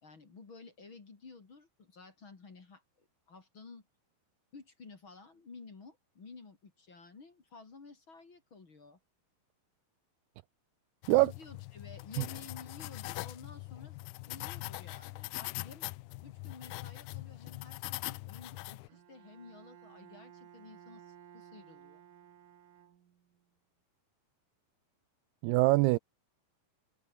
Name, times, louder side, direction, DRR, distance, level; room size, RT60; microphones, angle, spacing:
voice 1, 0.0-3.8 4.5-9.0 11.1-14.0 14.3-15.9 16.2-22.0, left 4 dB, 30° left, 3.2 m, -53 dB
sound 1, 11.0-18.9, left 21 dB, 80° left, 2.3 m, -42 dB
Bowed string instrument, 18.9-23.4, right 10 dB, 55° right, 3.2 m, -56 dB
voice 2, 25.4-26.0, right 21 dB, 85° right, 2.3 m, -24 dB
omnidirectional pair, 5.0 m